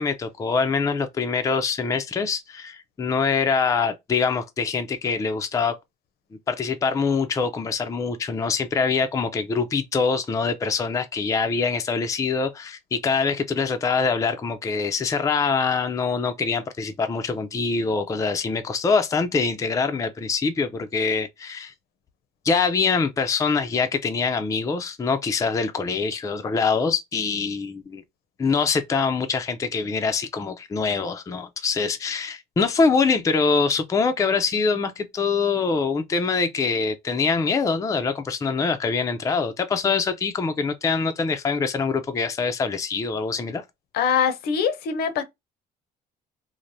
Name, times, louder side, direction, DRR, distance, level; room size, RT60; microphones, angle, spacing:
voice 1, 0.0-5.7 6.5-21.7 22.4-28.0 28.4-43.6, left 5 dB, 20° left, 0.4 m, -24 dB
voice 2, 43.9-45.2, left 7 dB, 70° left, 0.7 m, -23 dB
3.2 x 2.0 x 2.5 m
cardioid pair, 110°, 17 cm